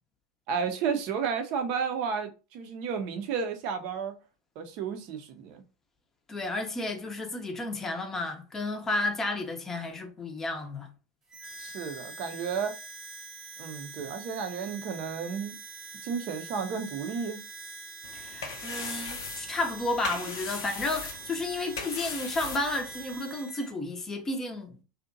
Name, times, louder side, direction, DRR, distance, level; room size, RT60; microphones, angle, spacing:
voice 1, 0.5-4.1 4.6-5.6 11.6-12.8 13.6-15.6 16.0-17.4, right 6 dB, 50° right, 0.5 m, -32 dB
voice 2, 6.3-10.9 18.1-24.8, left 2 dB, 20° left, 0.6 m, -32 dB
Harmonica, 11.3-23.7, right 4 dB, 25° right, 0.8 m, -44 dB
sound 1, 18.0-23.1, left 5 dB, 70° left, 0.5 m, -39 dB
2.6 x 2.1 x 2.6 m
figure-of-eight pair, 85°, 2 cm